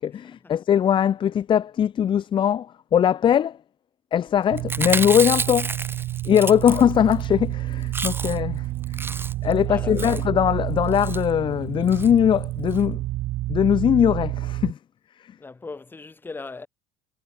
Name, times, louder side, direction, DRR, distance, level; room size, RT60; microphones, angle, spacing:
voice 1, 0.0-3.6 4.1-5.7 6.2-9.0 9.4-13.0 13.5-14.8 15.2-15.4, left 9 dB, 30° left, 1.7 m, -21 dB
sound 1, 4.5-14.7, right 17 dB, 40° right, 0.4 m, -29 dB
Chewing mastication, 4.6-7.2 7.5-7.6 7.8-8.5 8.8-9.5 10.0-10.3 10.9-11.2 11.9-12.1 12.4-12.5 12.7-12.8, right 4 dB, 10° right, 2.2 m, -30 dB
voice 2, 9.7-10.2 15.4-16.7, left 3 dB, 10° left, 7.0 m, -39 dB
cardioid pair, 165°, 18 cm